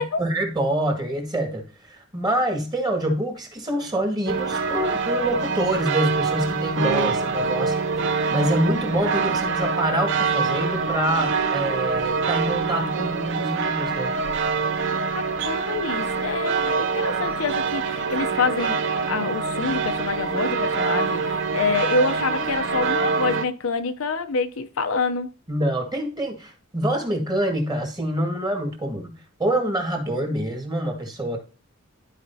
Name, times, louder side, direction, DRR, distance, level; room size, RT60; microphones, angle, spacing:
voice 1, 0.0-7.8 8.3-14.1 25.5-29.1 29.4-31.4, right 1 dB, 20° right, 2.1 m, -26 dB
sound 1, 4.3-23.5, right 4 dB, 60° right, 0.6 m, -25 dB
voice 2, 15.1-25.3, left 4 dB, 70° left, 0.7 m, -27 dB
12.5 x 4.9 x 2.8 m
head